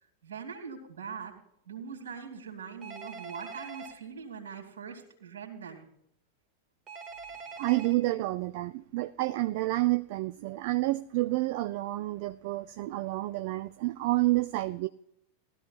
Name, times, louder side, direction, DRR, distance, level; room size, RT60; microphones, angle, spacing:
voice 1, 0.2-1.3 1.7-5.9, right 6 dB, 65° right, 3 dB, 2.5 m, -42 dB
Telephone, 2.8-3.9 6.9-7.9, right 5 dB, 25° right, 1.8 m, -43 dB
voice 2, 7.6-14.9, right 18 dB, 50° right, 12 dB, 0.4 m, -29 dB
19.5 x 13.0 x 2.4 m, 0.75 s
figure-of-eight pair, 90°, 0 cm